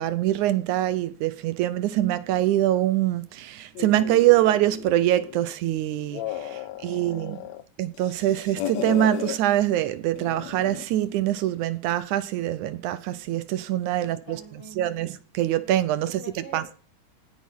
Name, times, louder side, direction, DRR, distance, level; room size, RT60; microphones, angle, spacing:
voice 1, 0.0-7.4 7.8-14.4 14.8-16.2 16.5-16.6, right 13 dB, 80° right, 2.1 m, -24 dB
sound 1, 3.7-5.5 5.9-7.6 7.9-9.4 10.2-10.9, left 12 dB, 70° left, 2.0 m, -35 dB
voice 2, 6.6-7.6 14.0-15.0 15.9-16.8, equal, 40° left, 4.3 m, -46 dB
18.0 x 10.0 x 3.6 m
omnidirectional pair, 3.5 m